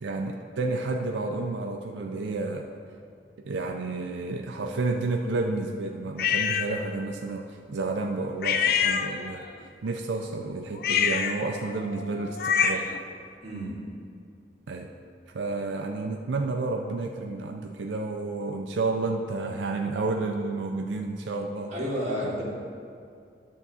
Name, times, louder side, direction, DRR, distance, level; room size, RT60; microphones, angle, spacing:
voice 1, 0.0-2.7 3.5-9.5 9.8-12.9 14.7-14.9 15.3-21.7, right 3 dB, 90° right, 2 dB, 0.5 m, -30 dB
sound 1, 6.2-6.7 8.4-9.5 10.8-13.0, left 7 dB, 55° left, 0.4 m, -26 dB
voice 2, 13.4-13.8 21.7-22.4, equal, 40° right, -6 dB, 2.0 m, -30 dB
10.5 x 3.7 x 6.8 m, 2.3 s
head